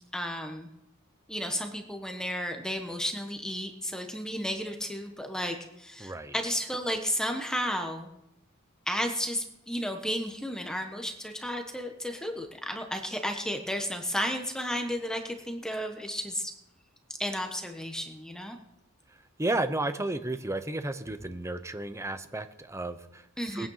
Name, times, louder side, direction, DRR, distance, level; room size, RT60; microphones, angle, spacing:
voice 1, 0.1-0.7 1.3-8.1 8.9-16.5 17.2-18.6 23.4-23.7, equal, 5° left, 5 dB, 1.2 m, -33 dB
voice 2, 6.0-6.3 19.4-23.2 23.5-23.7, right 2 dB, 15° right, 10 dB, 0.8 m, -32 dB
20.0 x 9.2 x 5.6 m, 0.86 s
head